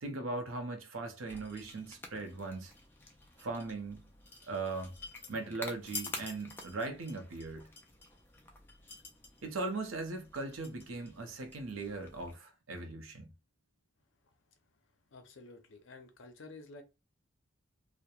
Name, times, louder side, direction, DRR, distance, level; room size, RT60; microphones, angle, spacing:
voice 1, 0.0-2.7 3.4-4.0 4.5-4.9 5.3-7.7 9.4-13.3, right 3 dB, 90° right, 0.6 m, -39 dB
sound 1, 1.3-12.3, left 3 dB, 10° left, 0.3 m, -49 dB
voice 2, 15.1-16.8, left 3 dB, 75° left, 0.5 m, -51 dB
2.9 x 2.0 x 2.3 m
head